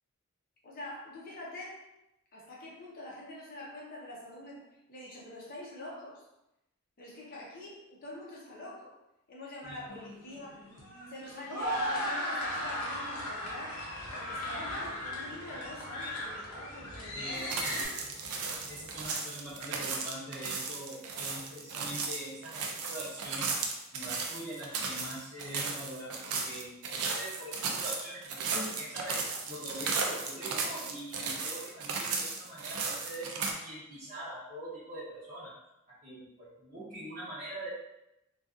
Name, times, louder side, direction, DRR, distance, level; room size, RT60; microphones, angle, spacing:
voice 1, 0.6-1.9 2.3-4.6 4.9-6.3 7.0-8.9 9.3-10.6 11.1-13.9 14.1-18.1, left 1 dB, 45° left, -3 dB, 0.7 m, -45 dB
sound 1, 9.9-17.8, equal, 85° left, 0.8 m, -37 dB
sound 2, 12.4-19.1, equal, 5° left, 1.1 m, -53 dB
voice 2, 17.1-17.8 18.7-23.5 23.9-29.2 29.5-35.5 35.9-37.7, right 1 dB, 35° right, -11 dB, 0.8 m, -43 dB
sound 3, 17.3-33.5, right 4 dB, 85° right, 0.4 m, -35 dB
2.6 x 2.3 x 2.3 m, 0.89 s
head